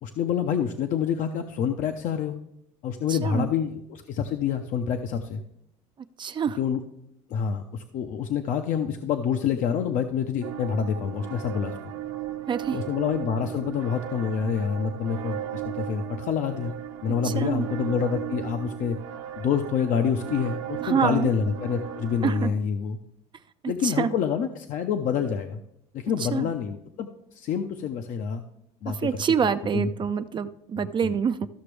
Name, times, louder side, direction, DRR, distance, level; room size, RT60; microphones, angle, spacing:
voice 1, 0.0-2.3 2.8-5.4 6.6-6.8 7.3-11.9 12.7-16.7 17.0-19.0 19.4-23.0 23.7-25.6 25.9-28.4 28.8-29.0 29.7-29.9 30.8-31.1, left 7 dB, 55° left, 6 dB, 0.7 m, -27 dB
voice 2, 3.1-3.5 6.2-6.6 12.5-12.8 17.2-17.7 20.8-21.3 22.2-22.5 23.6-24.2 26.2-26.5 28.9-31.5, right 7 dB, 30° right, 11 dB, 0.4 m, -26 dB
sound 1, 10.4-22.5, right 12 dB, 85° right, 0.9 m, -36 dB
13.5 x 5.9 x 3.3 m, 0.76 s
supercardioid pair, 95°, 15 cm